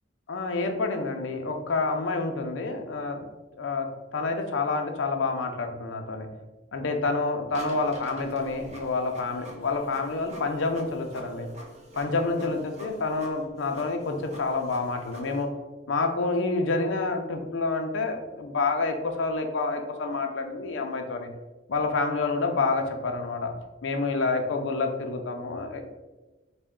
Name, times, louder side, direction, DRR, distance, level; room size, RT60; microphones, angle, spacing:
voice 1, 0.3-3.2 3.6-6.3 6.7-11.5 12.0-15.5 15.9-21.3 21.7-23.5 23.8-25.8, left 3 dB, 85° left, 5 dB, 0.5 m, -28 dB
Printer, 7.5-15.4, equal, 35° right, 0.7 m, -47 dB
4.1 x 2.2 x 3.5 m, 1.1 s
head